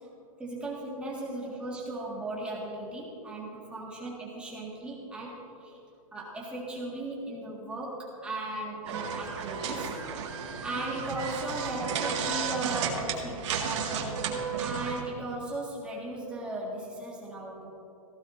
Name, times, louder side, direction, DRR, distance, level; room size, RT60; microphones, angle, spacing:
voice 1, 0.4-5.3 5.6-5.8 6.1-9.9 10.6-17.7, right 2 dB, 5° right, -5 dB, 1.8 m, -37 dB
sound 1, 8.8-15.0, right 6 dB, 50° right, 1.9 m, -33 dB
18.0 x 15.5 x 2.7 m, 2.8 s
hypercardioid pair, 165°, 19 cm